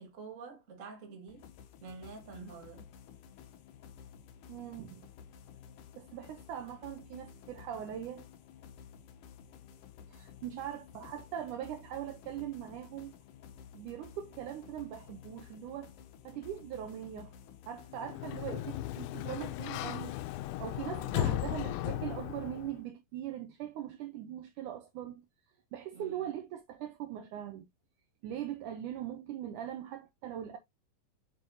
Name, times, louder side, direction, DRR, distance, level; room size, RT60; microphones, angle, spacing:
voice 1, 0.0-1.5 1.8-2.9 20.9-21.4 25.9-26.3, right 4 dB, 30° right, 1.6 m, -48 dB
sound 1, 1.3-20.5, left 8 dB, 70° left, 2.4 m, -53 dB
voice 2, 4.5-5.1 6.0-8.3 10.1-13.1 13.7-15.9 16.2-17.3 17.7-20.2 20.6-25.2 25.7-27.7 28.2-30.6, right 11 dB, 75° right, 2.0 m, -41 dB
Sliding door, 17.9-22.8, left 13 dB, 90° left, 2.4 m, -36 dB
7.5 x 6.4 x 2.8 m
omnidirectional pair, 4.2 m